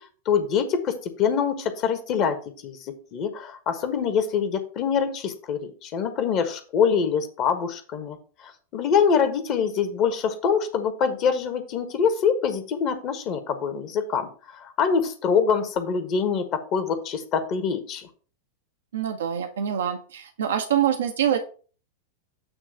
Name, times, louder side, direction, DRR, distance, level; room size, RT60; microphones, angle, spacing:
voice 1, 0.2-2.4 2.6-18.1, left 6 dB, 40° left, 9 dB, 1.3 m, -25 dB
voice 2, 18.9-21.4, right 9 dB, 65° right, 6 dB, 0.8 m, -25 dB
8.8 x 3.2 x 6.6 m, 0.39 s
figure-of-eight pair, 90°, 0 cm